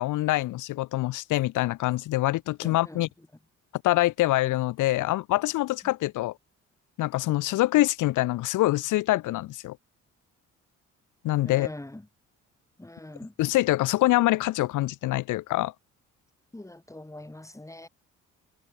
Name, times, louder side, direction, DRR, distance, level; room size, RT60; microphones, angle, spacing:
voice 1, 0.0-3.1 3.8-6.3 7.0-9.8 11.2-11.7 13.4-15.7, left 17 dB, 90° left, 1.4 m, -25 dB
voice 2, 2.6-3.0 11.4-12.0 12.8-13.3 16.5-17.9, left 1 dB, 10° left, 7.7 m, -42 dB
cardioid pair, 90°, 30 cm